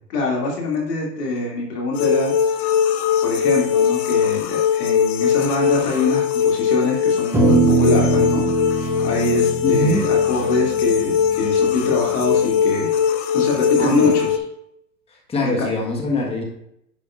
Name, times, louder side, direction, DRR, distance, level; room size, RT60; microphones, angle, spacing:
voice 1, 0.1-2.3 3.2-14.3 15.4-15.5, left 2 dB, 70° left, -2 dB, 2.6 m, -24 dB
sound 1, 1.9-14.4, left 8 dB, 50° left, 0.8 m, -20 dB
sound 2, 7.3-11.9, right 3 dB, 5° right, 0.8 m, -21 dB
voice 2, 9.6-10.0 13.8-14.2 15.1-16.4, left 1 dB, 10° left, 0 dB, 1.3 m, -23 dB
9.8 x 5.7 x 2.5 m, 0.76 s
hypercardioid pair, 125°, 49 cm